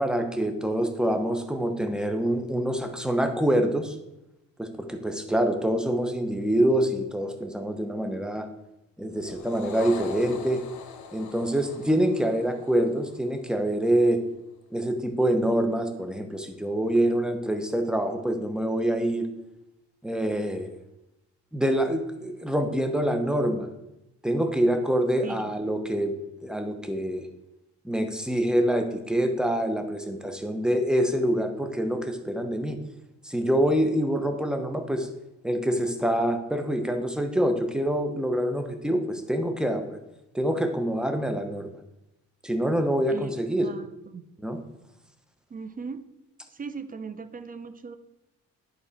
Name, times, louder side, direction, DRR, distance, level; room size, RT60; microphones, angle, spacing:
voice 1, 0.0-3.9 4.6-8.5 9.0-10.6 11.1-14.2 14.7-19.3 20.0-20.7 21.5-23.7 24.2-26.2 26.4-27.3 27.8-32.8 33.2-35.1 35.4-40.0 40.3-41.7 42.4-43.7 44.4-44.6, right 1 dB, 5° right, 6 dB, 0.9 m, -26 dB
sound 1, 9.2-13.8, left 6 dB, 75° left, 1.0 m, -42 dB
voice 2, 43.6-44.3 45.5-46.0 46.5-48.0, right 5 dB, 30° right, 11 dB, 0.6 m, -38 dB
10.5 x 4.1 x 4.3 m, 0.91 s
cardioid pair, 90°, 30 cm